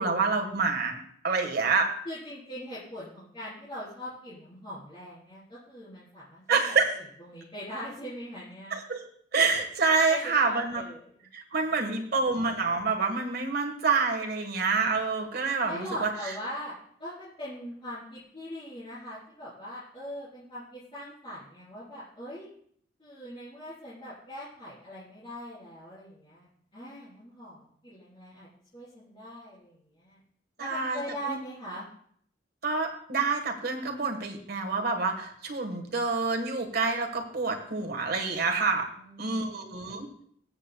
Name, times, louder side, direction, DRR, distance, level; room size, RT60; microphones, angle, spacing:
voice 1, 0.0-1.9 6.5-7.0 8.7-9.1 9.3-10.8 11.3-16.3 30.6-31.4 32.6-38.9 39.2-40.2, right 4 dB, 55° right, 3 dB, 1.4 m, -27 dB
voice 2, 2.1-6.7 7.2-8.8 10.1-11.1 11.6-12.1 15.6-16.7 17.0-22.5 23.0-28.5 28.7-30.2 30.6-31.9 39.0-39.8, equal, 30° left, -12 dB, 3.6 m, -41 dB
21.5 x 7.2 x 2.2 m, 0.64 s
head